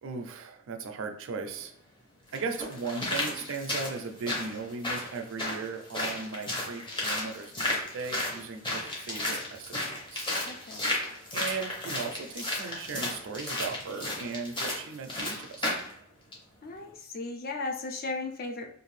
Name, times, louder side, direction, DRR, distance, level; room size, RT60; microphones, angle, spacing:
voice 1, 0.0-1.7 2.3-10.3 11.3-15.8, right 4 dB, 60° right, 5 dB, 0.4 m, -37 dB
sound 1, 1.5-1.6 2.3-15.9 16.3-16.4, left 1 dB, 20° left, 0.7 m, -33 dB
voice 2, 10.4-11.0 16.6-18.7, left 3 dB, 45° left, 3 dB, 0.4 m, -36 dB
2.5 x 2.5 x 3.1 m, 0.72 s
head